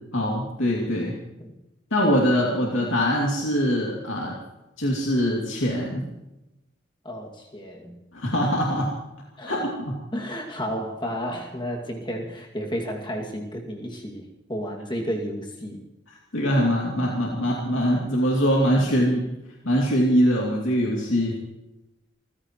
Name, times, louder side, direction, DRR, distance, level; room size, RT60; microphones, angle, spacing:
voice 1, 0.1-1.1 1.9-4.3 4.8-6.0 8.1-8.9 9.5-10.0 16.3-19.2 19.6-21.4, equal, 85° left, -3 dB, 2.6 m, -23 dB
voice 2, 7.0-8.0 9.4-9.6 10.1-15.8, equal, 25° left, 0 dB, 2.3 m, -32 dB
28.0 x 15.5 x 3.1 m, 0.96 s
head